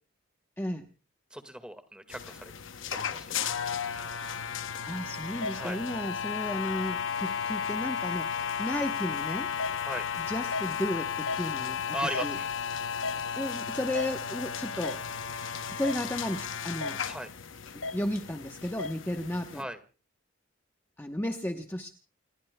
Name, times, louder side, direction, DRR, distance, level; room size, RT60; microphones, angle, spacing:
voice 1, 1.3-2.5 2.9-3.2 5.5-5.8 9.8-10.0 11.9-12.5 17.0-17.3 19.5-19.8, right 1 dB, 5° right, 8 dB, 1.8 m, -37 dB
sound 1, 2.1-19.6, left 6 dB, 65° left, 0.8 m, -34 dB
voice 2, 4.8-9.5 10.2-11.9 12.2-12.4 13.4-15.0 15.7-17.0 17.7-19.6 21.0-21.9, left 1 dB, 10° left, 3 dB, 1.0 m, -34 dB
29.5 x 20.5 x 2.3 m, 0.38 s
head